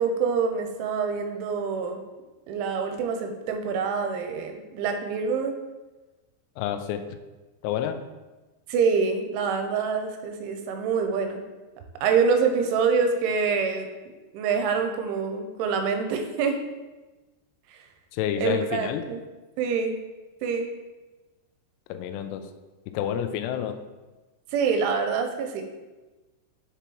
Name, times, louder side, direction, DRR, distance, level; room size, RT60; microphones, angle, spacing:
voice 1, 0.0-2.0 2.5-5.5 8.7-11.4 12.0-16.6 17.7-17.8 18.4-19.2 19.6-20.0 20.4-20.7 24.5-25.6, right 5 dB, 85° right, 5 dB, 3.1 m, -26 dB
voice 2, 6.6-7.0 7.6-8.0 18.1-19.0 21.9-22.5 22.9-23.8, left 9 dB, 85° left, 8 dB, 2.5 m, -29 dB
7.1 x 6.8 x 3.1 m, 1.2 s
omnidirectional pair, 5.5 m